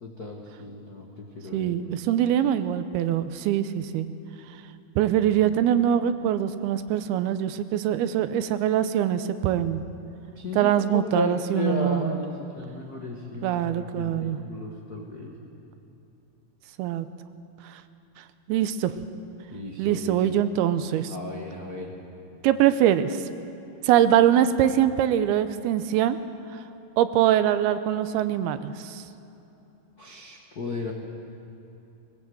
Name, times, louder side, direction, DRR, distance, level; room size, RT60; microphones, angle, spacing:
voice 1, 0.0-1.7 10.3-15.4 19.5-20.4 21.1-21.9 30.0-30.9, left 2 dB, 80° left, 0 dB, 0.8 m, -34 dB
voice 2, 1.5-4.1 5.0-9.8 10.5-12.1 13.4-14.4 16.8-17.1 17.6-17.8 18.5-18.9 19.8-21.1 22.4-23.3 23.8-26.2 26.5-26.6 27.0-29.0, right 10 dB, 80° right, 11 dB, 2.6 m, -23 dB
20.5 x 19.0 x 7.9 m, 2.9 s
omnidirectional pair, 4.5 m